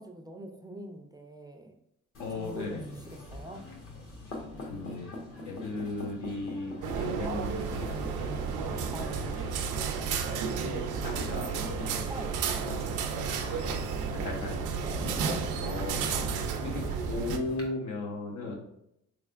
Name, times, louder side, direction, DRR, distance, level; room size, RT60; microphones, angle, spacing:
voice 1, 0.0-1.8 2.3-3.7 8.5-9.7 12.1-12.8 14.8-15.1 18.4-18.5, right 1 dB, 15° right, 3 dB, 0.3 m, -44 dB
sound 1, 2.1-17.7, left 2 dB, 45° left, 1.0 m, -43 dB
voice 2, 2.2-3.0 4.6-5.1 5.5-9.0 10.5-11.9 12.6-12.9 13.4-13.8 14.1-14.6 15.6-16.2 16.6-18.6, left 2 dB, 75° left, 0 dB, 1.0 m, -37 dB
sound 2, 6.8-17.4, right 6 dB, 90° right, 0.5 m, -32 dB
3.6 x 3.2 x 2.4 m, 0.79 s
cardioid pair, 90°, 30 cm